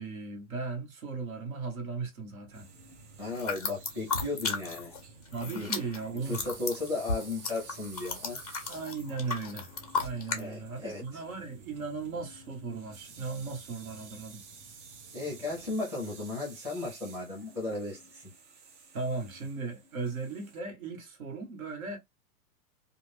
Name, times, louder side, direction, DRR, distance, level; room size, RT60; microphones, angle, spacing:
voice 1, 0.0-2.7 5.3-6.4 8.7-9.7 10.0-14.4 18.9-22.0, right 4 dB, 70° right, 1.5 m, -37 dB
sound 1, 2.5-15.8, right 3 dB, 25° right, 1.0 m, -57 dB
sound 2, 2.5-20.6, right 4 dB, 55° right, 0.9 m, -53 dB
voice 2, 3.2-4.9 5.5-5.7 6.2-8.4 10.4-11.2 15.1-18.3, left 3 dB, 5° right, 0.7 m, -35 dB
sound 3, 3.3-5.0 5.3-10.4, left 4 dB, 30° left, 0.4 m, -34 dB
2.5 x 2.4 x 3.4 m
supercardioid pair, 180°, 44 cm